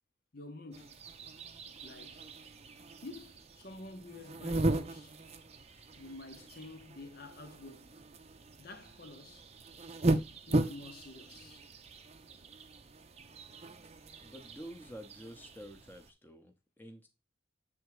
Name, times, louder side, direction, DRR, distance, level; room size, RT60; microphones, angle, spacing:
voice 1, 0.3-1.1 1.8-2.3 3.0-5.2 6.0-8.0 8.6-9.5 10.5-11.7, left 2 dB, 50° left, 0.9 m, -49 dB
sound 1, 0.7-16.1, right 2 dB, 30° right, 0.6 m, -38 dB
voice 2, 14.2-17.1, equal, 10° left, 0.9 m, -49 dB
7.9 x 3.5 x 4.8 m
head